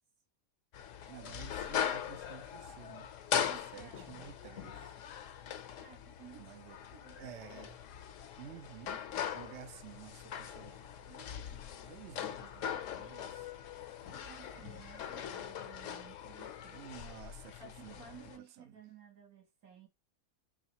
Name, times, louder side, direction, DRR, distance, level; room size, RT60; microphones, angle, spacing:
sound 1, 0.7-18.4, left 9 dB, 70° left, 0.9 m, -41 dB
voice 1, 1.1-5.0 6.4-6.8 7.2-7.8 8.4-9.0 9.3-11.1 11.9-13.5 14.5-14.9 16.7-18.0 18.4-18.7, right 10 dB, 65° right, 0.8 m, -52 dB
voice 2, 3.5-4.3 5.8-7.7 11.1-12.0 14.1-16.9 17.6-19.9, right 7 dB, 80° right, 1.8 m, -56 dB
4.6 x 3.1 x 2.8 m
omnidirectional pair, 1.5 m